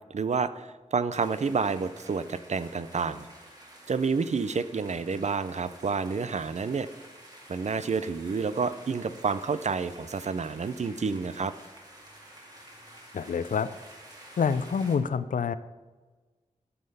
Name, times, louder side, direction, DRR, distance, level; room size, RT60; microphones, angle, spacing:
voice 1, 0.1-3.3 3.9-6.9 7.5-11.5, right 5 dB, 60° right, 13 dB, 0.5 m, -29 dB
sound 1, 1.1-15.0, right 1 dB, 30° right, 2.5 m, -50 dB
voice 2, 13.1-13.7 14.4-15.5, left 6 dB, 80° left, 15 dB, 0.5 m, -27 dB
12.5 x 5.7 x 5.5 m, 1.3 s
wide cardioid pair, 85°, 13 cm